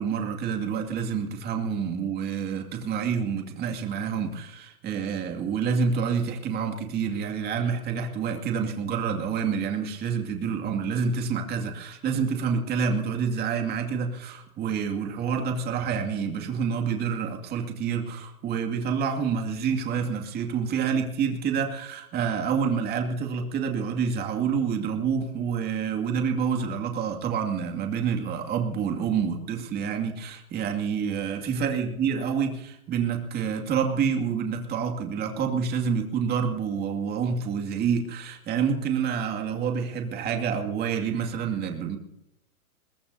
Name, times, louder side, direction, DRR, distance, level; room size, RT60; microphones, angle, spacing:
voice 1, 0.0-42.0, right 6 dB, 20° right, 3 dB, 2.4 m, -28 dB
22.5 x 20.5 x 2.8 m, 0.85 s
hypercardioid pair, 150°, 44 cm